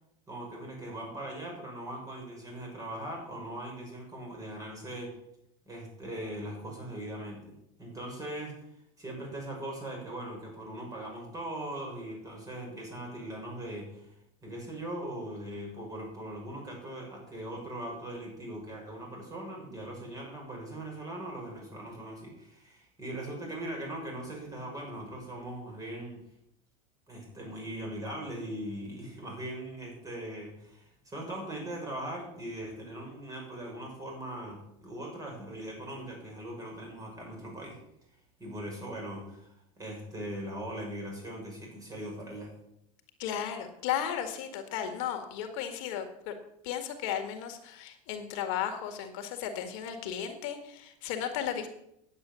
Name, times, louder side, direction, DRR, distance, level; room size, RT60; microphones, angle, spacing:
voice 1, 0.3-5.1 5.7-7.5 7.8-8.6 9.0-14.2 14.4-26.2 27.1-37.8 38.4-42.5, right 1 dB, 20° right, -1 dB, 6.0 m, -40 dB
voice 2, 43.2-46.3 46.6-51.7, left 9 dB, 65° left, 6 dB, 1.8 m, -35 dB
9.8 x 8.7 x 6.9 m, 0.78 s
supercardioid pair, 120°, 18 cm